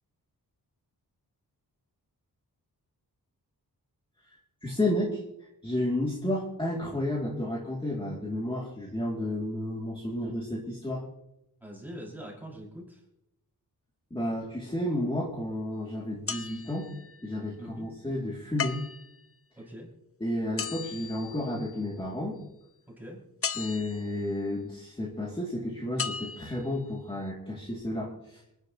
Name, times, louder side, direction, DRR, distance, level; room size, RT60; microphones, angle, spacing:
voice 1, 4.6-5.2 5.6-11.0 14.1-16.9 17.2-18.8 20.2-22.4 23.5-28.4, left 1 dB, 15° left, -3 dB, 2.4 m, -31 dB
voice 2, 11.6-13.0 17.6-17.9 19.6-19.9 23.0-23.2, equal, 5° right, -4 dB, 5.6 m, -43 dB
sound 1, 16.3-17.3 18.6-19.2 20.6-21.9 23.4-24.2 26.0-26.7 27.3-27.4, left 6 dB, 35° left, 0.6 m, -36 dB
27.0 x 10.5 x 2.9 m, 0.85 s
wide cardioid pair, 175°, 38 cm